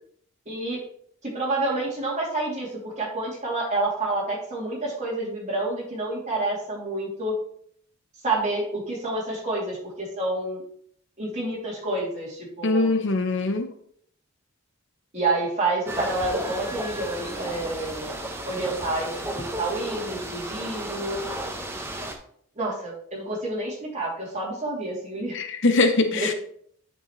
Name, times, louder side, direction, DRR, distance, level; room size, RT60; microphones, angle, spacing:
voice 1, 0.5-0.8 1.2-7.3 8.2-10.6 11.2-12.9 15.1-18.1 18.4-21.2 22.6-25.4 26.1-26.3, right 2 dB, 30° right, -4 dB, 2.7 m, -28 dB
voice 2, 12.6-13.7 25.3-26.3, left 3 dB, 55° left, 7 dB, 0.7 m, -22 dB
sound 1, 15.9-22.1, right 1 dB, 10° right, 0.8 m, -33 dB
9.3 x 5.5 x 3.1 m, 0.64 s
head